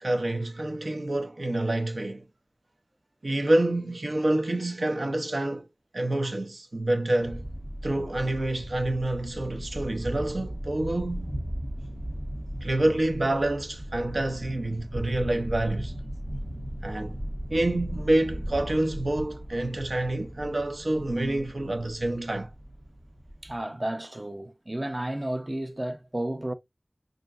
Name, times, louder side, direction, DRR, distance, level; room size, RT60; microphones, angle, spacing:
voice 1, 0.0-2.2 3.2-5.7 5.9-7.4 7.8-11.3 12.6-15.9 16.8-17.2 17.5-22.5, right 1 dB, 90° right, 0.7 m, -27 dB
sound 1, 7.2-23.6, equal, 60° right, 0.9 m, -37 dB
voice 2, 23.4-26.5, right 1 dB, 35° right, 0.5 m, -32 dB
5.7 x 2.5 x 2.4 m
wide cardioid pair, 45°, 0 cm